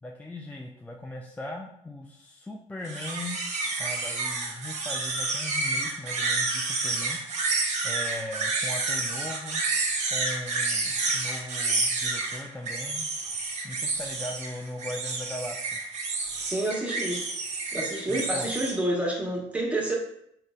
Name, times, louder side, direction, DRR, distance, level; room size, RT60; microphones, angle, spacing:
voice 1, 0.0-3.4 3.8-7.2 7.8-9.6 10.1-13.1 13.6-15.8 18.1-18.5, left 1 dB, 10° left, 0 dB, 0.3 m, -39 dB
sound 1, 2.8-18.7, right 3 dB, 50° right, 0.7 m, -29 dB
voice 2, 16.5-17.2 17.7-19.9, right 1 dB, 10° right, -2 dB, 1.0 m, -28 dB
3.8 x 2.1 x 2.3 m, 0.71 s
hypercardioid pair, 60°, 15 cm